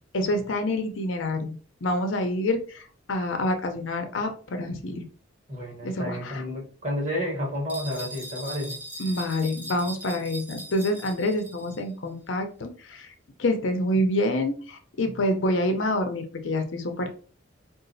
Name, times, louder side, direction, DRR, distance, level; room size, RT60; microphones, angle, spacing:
voice 1, 0.1-1.5 1.8-5.0 5.8-6.4 9.0-13.1 13.4-17.1, left 1 dB, 75° left, 5 dB, 0.6 m, -27 dB
voice 2, 5.5-8.8 15.0-15.2, left 1 dB, 40° right, -1 dB, 1.2 m, -31 dB
sound 1, 7.7-11.8, right 1 dB, 10° right, 0.4 m, -40 dB
3.9 x 2.4 x 2.6 m, 0.40 s
head